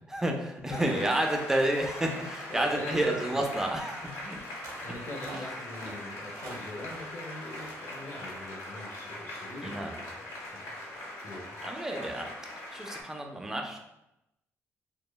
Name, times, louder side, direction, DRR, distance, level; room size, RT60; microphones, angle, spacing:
voice 1, 0.1-4.5 5.9-6.0 9.6-10.0 11.6-13.8, right 1 dB, 10° right, 2 dB, 0.3 m, -30 dB
Applause, 0.7-13.0, left 1 dB, 85° left, 0.9 m, -41 dB
voice 2, 2.5-3.4 4.8-10.2 10.5-10.7 11.2-11.7, left 1 dB, 40° left, -1 dB, 0.6 m, -42 dB
sound 1, 4.6-4.9 5.2-6.0 6.3-7.1 7.5-7.8 8.1-8.4, right 2 dB, 85° right, 0.6 m, -46 dB
2.9 x 2.1 x 2.2 m, 0.88 s
cardioid pair, 145°, 5 cm